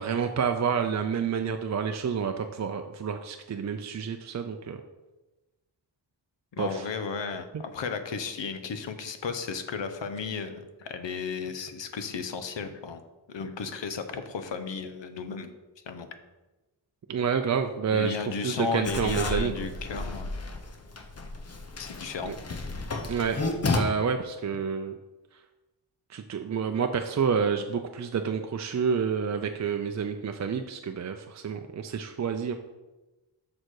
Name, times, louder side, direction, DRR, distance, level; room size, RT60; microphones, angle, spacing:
voice 1, 0.0-4.8 6.6-6.8 17.1-18.2 18.4-19.5 22.2-22.4 23.1-23.4 23.7-24.9 26.1-32.5, right 6 dB, 40° right, 6 dB, 0.4 m, -29 dB
voice 2, 6.5-13.0 13.3-15.5 15.9-16.1 17.9-20.3 21.8-22.3, left 5 dB, 85° left, 9 dB, 0.8 m, -34 dB
Writing, 18.8-23.8, left 3 dB, 35° left, 0.8 m, -32 dB
6.7 x 6.2 x 4.7 m, 1.1 s
wide cardioid pair, 125°, 43 cm